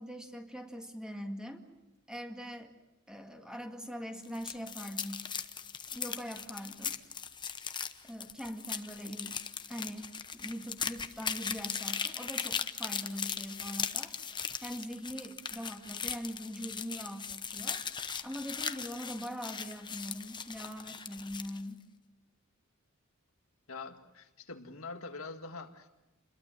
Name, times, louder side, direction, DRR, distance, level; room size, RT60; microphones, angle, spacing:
voice 1, 0.0-1.6 2.1-2.7 3.1-5.3 5.9-7.0 8.0-9.4 9.7-14.2 14.6-17.8 18.2-21.8, equal, 5° right, 4 dB, 2.1 m, -42 dB
sound 1, 4.2-21.6, left 6 dB, 20° left, 0.9 m, -39 dB
voice 2, 23.7-25.9, left 3 dB, 90° left, 5 dB, 2.0 m, -44 dB
28.5 x 21.5 x 7.4 m, 1.0 s
head